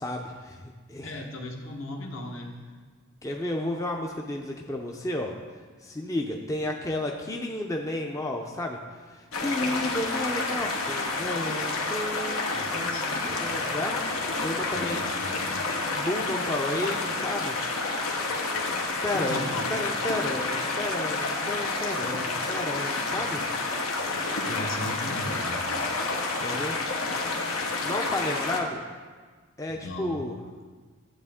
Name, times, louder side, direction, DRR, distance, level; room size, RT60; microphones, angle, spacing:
voice 1, 0.0-1.1 3.2-5.3 5.8-15.0 15.9-17.6 19.0-23.4 26.4-26.8 27.8-28.8 29.6-30.4, left 1 dB, 15° left, 1 dB, 0.5 m, -32 dB
voice 2, 1.0-2.6 12.5-13.1 14.7-15.7 19.1-20.1 24.4-25.6 29.7-30.2, left 1 dB, 65° left, 1 dB, 1.2 m, -37 dB
sound 1, 9.3-28.6, left 3 dB, 90° left, 1.1 m, -29 dB
11.0 x 7.7 x 3.6 m, 1.5 s
head